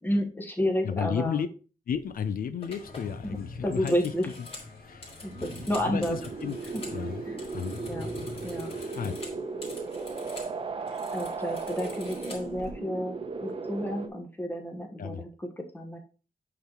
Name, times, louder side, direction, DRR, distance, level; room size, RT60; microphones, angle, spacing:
voice 1, 0.0-1.4 3.2-3.4 3.6-4.3 5.2-6.2 7.3-7.4 7.9-8.1 8.4-8.7 11.1-16.0, equal, 15° left, 3 dB, 1.3 m, -31 dB
voice 2, 0.8-1.5 1.9-4.1 4.8-5.1 5.4-5.5 5.8-6.6 6.9-7.2 7.5-7.8 8.4-8.6 8.9-9.1 15.0-15.2, left 7 dB, 70° left, 11 dB, 0.6 m, -33 dB
sound 1, 2.0-2.2 2.6-7.0 7.3-10.5 10.8-12.7, left 2 dB, 40° left, 2.9 m, -47 dB
sound 2, 2.7-9.2, left 3 dB, 85° left, 2.1 m, -45 dB
sound 3, 5.3-14.1, right 4 dB, 35° right, 0.9 m, -36 dB
8.6 x 4.0 x 4.4 m, 0.36 s
wide cardioid pair, 170°, 15 cm